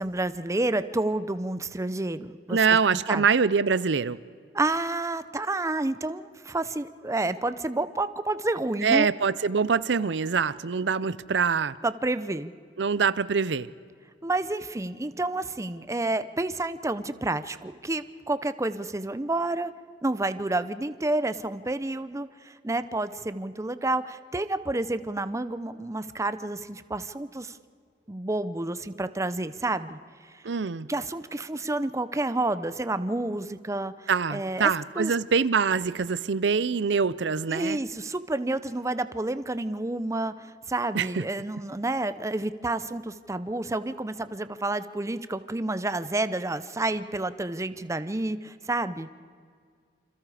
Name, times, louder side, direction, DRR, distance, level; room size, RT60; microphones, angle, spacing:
voice 1, 0.0-3.2 4.5-9.1 11.8-12.5 14.2-19.7 20.0-27.6 28.1-30.3 30.9-34.7 35.0-35.2 37.5-49.1, right 2 dB, 15° right, 13 dB, 0.7 m, -29 dB
voice 2, 2.5-4.2 8.8-11.8 12.8-13.7 30.4-30.9 34.1-37.8 40.9-41.2, right 5 dB, 85° right, 17 dB, 0.6 m, -24 dB
28.0 x 27.0 x 5.0 m, 2.1 s
head